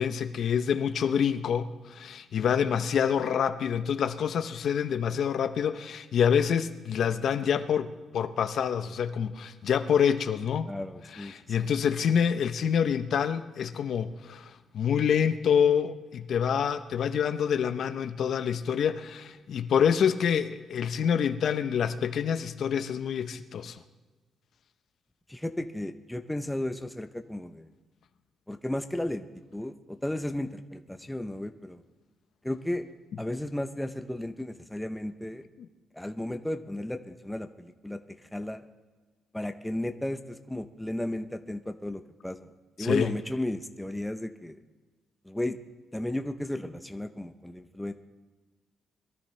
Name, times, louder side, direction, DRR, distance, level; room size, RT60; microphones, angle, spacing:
voice 1, 0.0-10.7 11.1-23.8 35.6-35.7 42.8-43.1, left 7 dB, 55° left, 10 dB, 0.7 m, -27 dB
voice 2, 10.6-11.3 11.6-11.7 25.3-27.7 28.5-29.3 29.5-31.8 32.4-32.8 33.2-35.4 36.0-38.0 38.3-38.6 39.3-42.5 42.8-44.6 45.3-45.6 45.9-47.9, left 1 dB, 5° left, 7 dB, 0.6 m, -34 dB
22.5 x 13.0 x 3.2 m, 1.3 s
cardioid pair, 160°, 0 cm